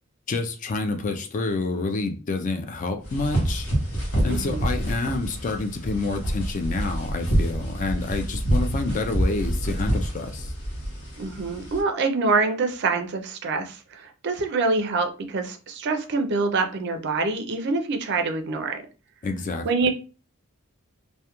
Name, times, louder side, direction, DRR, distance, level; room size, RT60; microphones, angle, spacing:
voice 1, 0.3-3.7 4.2-10.5 19.2-19.7, left 3 dB, 35° left, 0.3 m, -28 dB
sound 1, 3.0-11.8, right 1 dB, 65° left, 0.9 m, -27 dB
voice 2, 4.3-4.6 11.2-18.8 19.6-19.9, right 3 dB, 50° right, 0.4 m, -25 dB
2.3 x 2.1 x 2.8 m
head